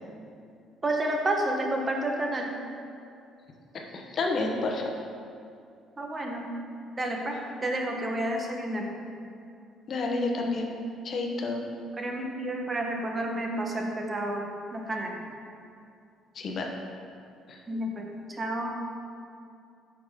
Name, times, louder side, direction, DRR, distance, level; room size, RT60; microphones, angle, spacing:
voice 1, 0.8-2.5 6.0-6.5 7.0-8.9 12.0-15.2 17.7-18.7, right 1 dB, 25° right, 1 dB, 1.0 m, -30 dB
voice 2, 3.7-4.9 9.9-10.7 11.0-11.6 16.3-16.7 17.5-17.6, left 3 dB, 50° left, 1 dB, 1.0 m, -30 dB
8.6 x 6.1 x 3.6 m, 2.5 s
cardioid pair, 100°, 0 cm